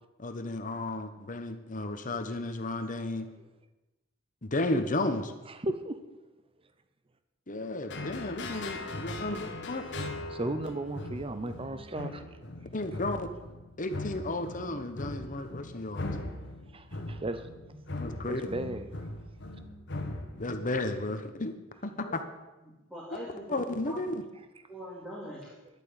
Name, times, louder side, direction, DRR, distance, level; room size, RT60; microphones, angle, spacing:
voice 1, 0.2-3.3 4.4-5.3 7.5-9.8 12.7-13.3 13.8-16.1 18.0-18.5 20.3-21.5 21.8-22.2 23.5-24.2, left 2 dB, 40° left, 1.3 m, -33 dB
voice 2, 5.5-6.0 8.5-8.7 10.3-12.2 16.7-17.8 18.2-18.9, right 1 dB, 25° right, 0.8 m, -35 dB
sound 1, 7.9-21.0, left 2 dB, 60° left, 1.7 m, -40 dB
voice 3, 22.6-24.0 24.7-25.5, equal, 5° right, 3.3 m, -43 dB
11.5 x 8.9 x 8.9 m
head